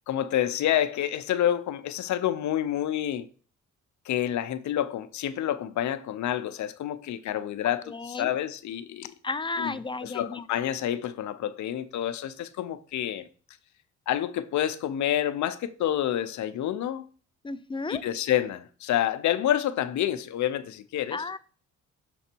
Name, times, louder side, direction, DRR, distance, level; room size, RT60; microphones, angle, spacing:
voice 1, 0.1-3.3 4.1-9.1 9.6-9.8 10.0-13.3 14.1-17.0 17.9-21.2, left 11 dB, 70° left, 0.7 m, -28 dB
voice 2, 7.9-8.3 9.2-10.4 17.4-18.0 21.1-21.4, left 3 dB, 15° left, 0.5 m, -33 dB
6.8 x 4.1 x 4.4 m
cardioid pair, 90°, 30 cm